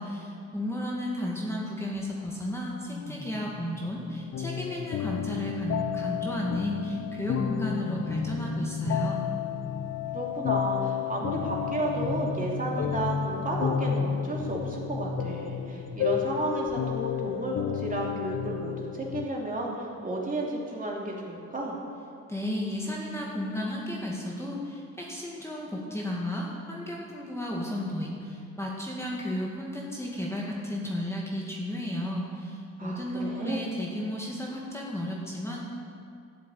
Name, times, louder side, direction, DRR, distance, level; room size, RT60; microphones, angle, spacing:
voice 1, 0.0-9.2 22.3-35.7, left 1 dB, 10° left, -3 dB, 2.1 m, -33 dB
sound 1, 2.6-6.3 6.9-10.1 11.2-16.4 16.7-16.9, left 3 dB, 40° left, 1.7 m, -36 dB
sound 2, 4.3-19.3, left 10 dB, 60° left, 0.7 m, -32 dB
voice 2, 10.1-21.7 32.8-33.7, right 2 dB, 25° right, -3 dB, 2.9 m, -32 dB
12.5 x 7.4 x 8.5 m, 2.3 s
cardioid pair, 90°, 30 cm